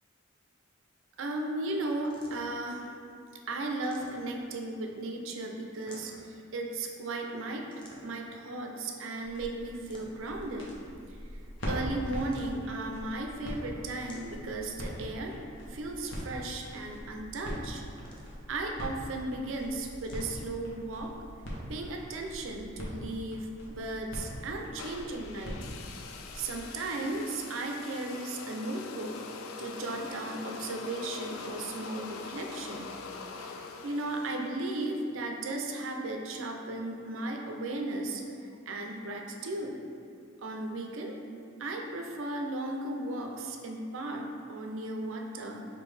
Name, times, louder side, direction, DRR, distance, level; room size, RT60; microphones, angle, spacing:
voice 1, 1.2-2.9 3.5-7.7 8.0-10.7 11.7-15.3 15.7-17.8 18.5-21.1 21.7-25.6 26.3-29.2 29.6-32.9 33.4-39.8 40.4-41.2 41.6-45.7, right 2 dB, 65° right, 2 dB, 0.4 m, -36 dB
sound 1, 2.0-2.6 3.7-4.6 5.7-6.4 7.7-8.3 9.6-10.4 12.0-12.8 13.9-14.7 16.0-16.5 17.8-18.6 19.9-20.4, left 1 dB, 25° left, 0.5 m, -53 dB
sound 2, 9.2-26.7, equal, 60° left, 0.9 m, -42 dB
sound 3, 24.8-35.0, left 4 dB, 75° left, 0.3 m, -43 dB
5.2 x 2.6 x 3.2 m, 2.3 s
head